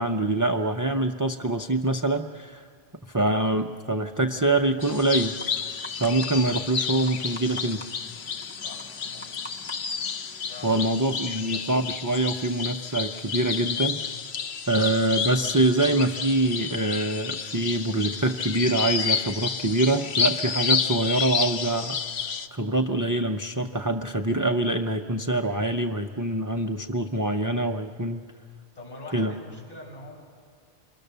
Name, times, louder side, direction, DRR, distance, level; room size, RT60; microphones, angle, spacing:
voice 1, 0.0-2.6 3.1-5.4 6.0-7.8 10.6-14.0 14.7-22.0 22.5-28.3 29.1-29.3, right 1 dB, 25° right, 4 dB, 0.5 m, -25 dB
sound 1, 4.4-10.9, equal, 10° left, 0.8 m, -47 dB
sound 2, 4.8-22.5, left 6 dB, 70° left, 1.1 m, -30 dB
voice 2, 8.5-9.3 10.5-10.8 11.1-11.5 28.7-30.2, left 2 dB, 35° left, -1 dB, 7.6 m, -44 dB
29.0 x 23.0 x 6.8 m, 2.1 s
omnidirectional pair, 1.1 m